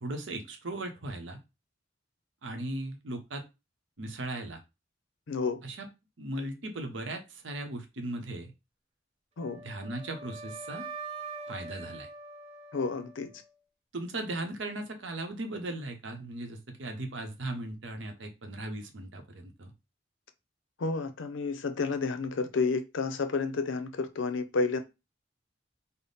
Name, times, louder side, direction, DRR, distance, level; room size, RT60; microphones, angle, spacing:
voice 1, 0.0-1.4 2.4-3.4 4.0-4.6 5.6-5.9 6.2-8.5 9.5-10.9 11.5-12.1 13.9-19.7, right 2 dB, 75° right, 0.8 m, -37 dB
voice 2, 5.3-5.6 9.4-9.6 12.7-13.3 20.8-24.8, left 4 dB, 75° left, 0.5 m, -30 dB
Wind instrument woodwind instrument, 9.4-13.5, right 4 dB, 35° right, 0.8 m, -43 dB
3.5 x 2.0 x 3.9 m
head